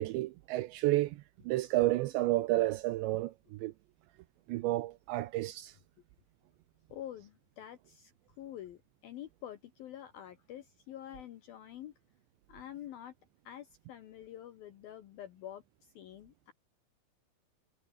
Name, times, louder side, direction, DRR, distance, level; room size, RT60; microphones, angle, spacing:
voice 1, 0.0-3.7 4.5-5.7, right 17 dB, 80° right, 2.7 m, -31 dB
voice 2, 6.9-11.9 12.5-13.1 13.4-16.5, left 11 dB, 75° left, 2.2 m, -47 dB
omnidirectional pair, 5.8 m